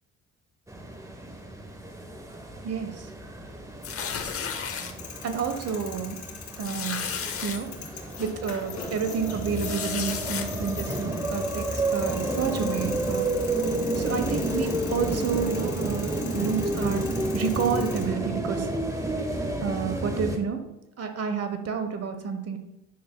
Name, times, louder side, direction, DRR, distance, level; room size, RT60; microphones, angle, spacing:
sound 1, 0.7-20.4, right 1 dB, 10° right, 1.0 m, -31 dB
voice 1, 2.6-3.1 5.2-6.2 6.6-7.0 7.4-13.3 13.9-18.7 19.6-20.6 21.0-22.6, right 6 dB, 55° right, 7 dB, 1.1 m, -30 dB
sound 2, 3.8-4.9 5.5-5.7 6.0-6.1 6.6-7.6 8.2-8.3 9.5-10.5, left 7 dB, 50° left, 0.9 m, -33 dB
sound 3, 4.9-18.0, left 6 dB, 70° left, 2.2 m, -42 dB
10.0 x 6.9 x 2.2 m, 0.92 s
cardioid pair, 90°, 30 cm